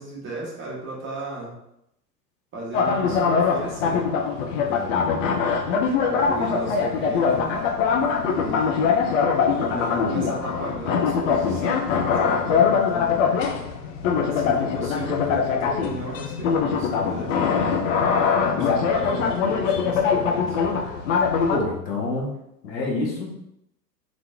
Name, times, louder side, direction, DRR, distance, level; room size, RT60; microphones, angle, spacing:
voice 1, 0.0-1.5 2.5-4.0 4.5-5.3 6.0-7.5 8.3-8.9 9.6-13.3 14.2-17.5 18.5-20.6, right 2 dB, 25° right, -4 dB, 1.2 m, -35 dB
sound 1, 2.7-21.6, left 6 dB, 50° left, 0.5 m, -22 dB
voice 2, 21.5-22.3 22.6-23.3, left 2 dB, 85° left, -3 dB, 1.2 m, -27 dB
4.0 x 3.0 x 2.3 m, 0.81 s
figure-of-eight pair, 95°, 50 cm